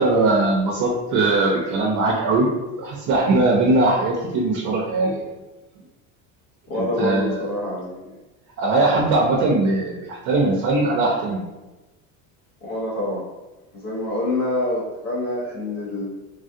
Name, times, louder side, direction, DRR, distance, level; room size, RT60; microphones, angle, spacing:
voice 1, 0.0-2.5 2.8-5.2 6.7-7.4 8.6-11.4, right 2 dB, 50° right, -2 dB, 0.6 m, -20 dB
voice 2, 6.7-8.2 12.6-13.2 13.8-16.1, left 1 dB, 60° left, -4 dB, 1.3 m, -26 dB
3.2 x 2.3 x 2.7 m, 1.1 s
cardioid pair, 135°, 37 cm